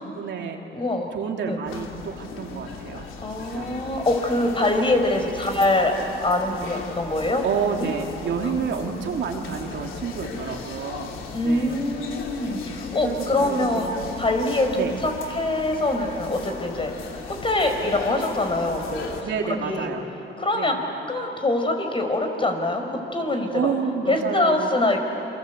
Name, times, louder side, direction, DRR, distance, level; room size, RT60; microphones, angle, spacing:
voice 1, 0.0-0.6 1.1-3.1 3.4-3.7 7.4-11.8 13.0-14.0 14.7-14.9 19.2-20.1 20.5-20.8 23.5-24.7, right 6 dB, 65° right, 2 dB, 2.9 m, -29 dB
voice 2, 0.7-1.1 1.5-1.6 3.2-7.4 7.7-7.9 8.4-8.5 11.3-13.9 14.2-16.9 17.3-19.3 19.6-19.9 20.4-20.8 21.1-23.7 24.1-25.0, left 2 dB, 25° left, 4 dB, 4.7 m, -24 dB
sound 1, 1.7-19.2, left 5 dB, 85° left, 3.0 m, -37 dB
29.0 x 24.5 x 8.2 m, 2.9 s
cardioid pair, 90°, 20 cm